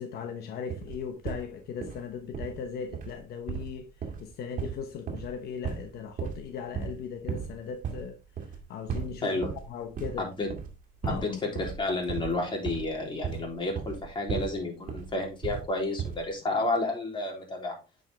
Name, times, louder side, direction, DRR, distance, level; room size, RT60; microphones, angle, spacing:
voice 1, 0.0-3.9 4.2-8.2 8.7-10.3 11.0-11.4, left 7 dB, 70° left, 1.0 m, -38 dB
sound 1, 0.7-1.4 1.8-2.0 2.3-2.6 2.9-3.2 3.5-5.3 5.6-5.9 6.2-6.5 6.7-7.0 7.3-7.6 7.8-8.1 8.4-8.6 8.9-9.7 10.0-10.2 10.5-10.7 11.0-11.3 11.6-14.6 14.9-15.7 16.0-16.3, right 7 dB, 50° right, 2.1 m, -35 dB
voice 2, 10.2-10.5 11.1-17.8, left 2 dB, 30° left, 3.4 m, -31 dB
8.9 x 5.4 x 3.5 m
cardioid pair, 110°, 17 cm